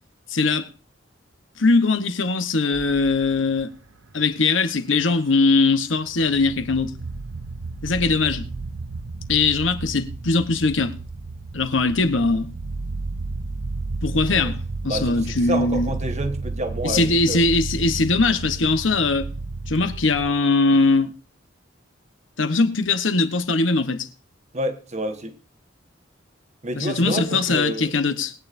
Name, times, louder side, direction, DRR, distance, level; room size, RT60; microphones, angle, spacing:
voice 1, 0.3-0.7 1.6-3.7 4.1-6.9 7.8-8.5 9.3-11.0 11.5-12.5 14.0-15.9 16.8-19.3 19.7-21.1 22.4-24.1 26.7-28.3, left 3 dB, 80° left, 1.2 m, -21 dB
sound 1, 2.7-4.1 5.5-5.6 5.9-20.3, right 3 dB, 90° right, 0.8 m, -32 dB
voice 2, 14.1-14.5 14.9-17.4 24.5-25.3 26.6-27.9, right 1 dB, 35° right, 1.4 m, -29 dB
21.5 x 9.0 x 2.7 m
head